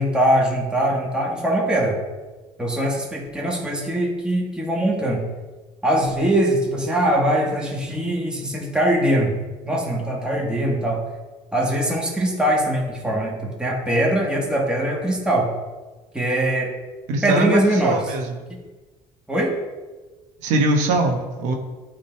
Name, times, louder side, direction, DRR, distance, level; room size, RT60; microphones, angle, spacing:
voice 1, 0.0-2.0 2.6-5.2 5.8-9.4 9.6-11.0 11.5-15.5 16.1-16.7 17.2-18.0 18.5-18.6 19.3-19.6, right 1 dB, 5° right, -2 dB, 1.8 m, -22 dB
voice 2, 17.1-18.4 20.4-21.5, right 2 dB, 80° right, 2 dB, 1.2 m, -22 dB
11.5 x 3.8 x 4.6 m, 1.3 s
cardioid pair, 115°, 12 cm